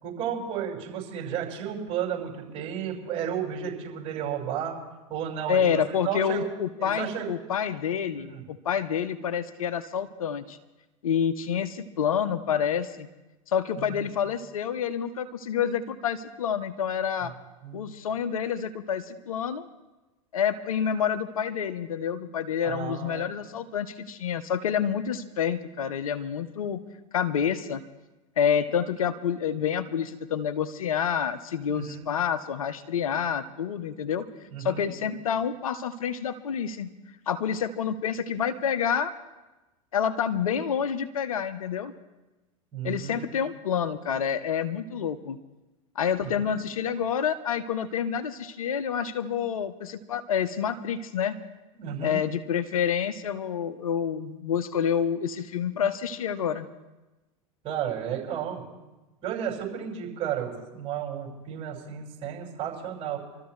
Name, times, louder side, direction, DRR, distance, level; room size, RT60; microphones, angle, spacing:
voice 1, 0.0-4.7 5.1-6.5 6.8-7.3 8.1-8.4 13.8-14.1 17.2-17.3 17.6-17.8 22.6-23.3 31.7-32.1 34.5-34.9 42.7-43.4 46.2-46.5 51.8-52.2 57.6-58.6 59.2-63.2, right 9 dB, 35° right, -4 dB, 5.7 m, -33 dB
voice 2, 5.5-10.6 11.0-13.1 13.5-17.3 17.7-19.7 20.3-26.8 27.1-27.8 28.4-34.3 34.6-36.9 37.3-39.1 39.9-41.9 42.8-45.4 46.0-51.4 52.0-56.7, left 8 dB, 85° left, 11 dB, 0.8 m, -28 dB
26.0 x 13.5 x 3.2 m, 1.1 s
hypercardioid pair, 100°, 17 cm